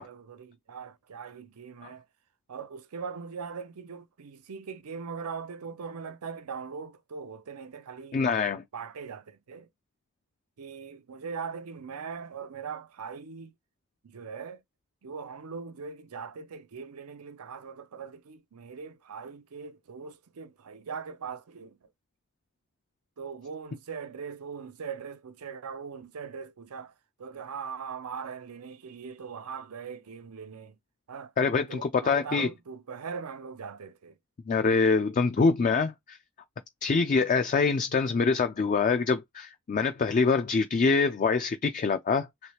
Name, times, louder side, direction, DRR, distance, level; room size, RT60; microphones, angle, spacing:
voice 1, 0.0-2.0 2.5-8.2 8.7-9.7 10.6-13.5 14.0-14.6 15.0-21.9 23.2-26.9 27.2-30.8 31.1-31.3 31.7-34.2, right 6 dB, 85° right, 0.6 m, -40 dB
voice 2, 8.1-8.6 31.4-32.5 34.5-36.2 36.8-42.3, left 4 dB, 35° left, 0.3 m, -25 dB
3.3 x 3.1 x 2.8 m
head